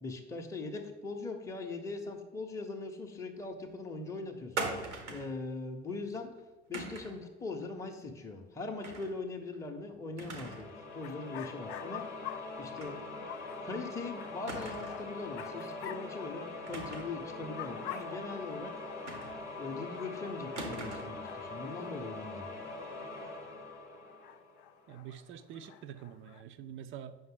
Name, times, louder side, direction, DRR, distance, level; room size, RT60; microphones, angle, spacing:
voice 1, 0.0-4.7 5.1-6.3 6.7-12.1 12.6-13.0 13.6-18.7 19.6-22.5, left 3 dB, 10° left, 2 dB, 0.7 m, -41 dB
sound 1, 4.6-5.4 6.7-7.2 8.8-9.2 9.5-9.6 10.2-10.7 11.1-11.2 12.8-13.0 13.3-13.4 14.5-15.1 16.7-17.2 19.1-19.6 20.6-21.2, right 3 dB, 85° right, 0.9 m, -40 dB
sound 2, 10.4-25.0, left 3 dB, 85° left, 0.8 m, -43 dB
sound 3, 10.4-10.6 10.9-17.0 17.3-19.4 19.9-23.8 24.1-26.4, left 12 dB, 55° left, 0.4 m, -49 dB
voice 2, 24.9-27.2, right 9 dB, 35° right, 12 dB, 0.4 m, -46 dB
7.7 x 5.5 x 3.7 m, 1.3 s
figure-of-eight pair, 60°, 34 cm